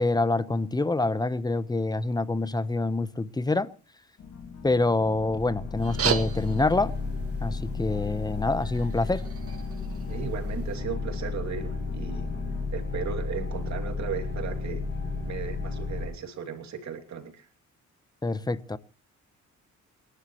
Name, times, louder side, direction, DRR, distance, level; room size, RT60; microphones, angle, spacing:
voice 1, 0.0-3.7 4.6-6.9 7.4-9.3 18.2-18.8, left 2 dB, 15° left, 0.9 m, -26 dB
sound 1, 4.2-12.7, left 5 dB, 65° left, 2.8 m, -45 dB
sound 2, 5.1-16.1, left 3 dB, 40° left, 7.6 m, -33 dB
sound 3, 5.8-10.8, right 7 dB, 50° right, 1.7 m, -36 dB
voice 2, 10.1-12.4 12.7-14.8 15.2-17.5, right 7 dB, 65° right, 2.9 m, -36 dB
28.0 x 11.5 x 3.1 m
cardioid pair, 90°, 30 cm